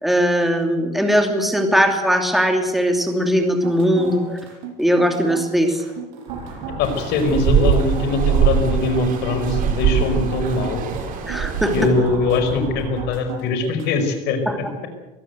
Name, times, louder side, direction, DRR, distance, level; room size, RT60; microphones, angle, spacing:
voice 1, 0.0-4.2 4.8-5.8 11.3-11.7 14.5-14.7, equal, ahead, 4 dB, 2.8 m, -19 dB
sound 1, 3.5-14.1, right 7 dB, 65° right, 7.7 m, -35 dB
sound 2, 6.3-13.1, right 2 dB, 25° right, 6.8 m, -34 dB
voice 2, 6.8-10.9 11.7-14.7, left 3 dB, 55° left, 7 dB, 5.2 m, -22 dB
sound 3, 6.8-11.9, right 9 dB, 40° right, 3.3 m, -22 dB
23.0 x 16.0 x 8.1 m, 1.1 s
cardioid pair, 140°, 21 cm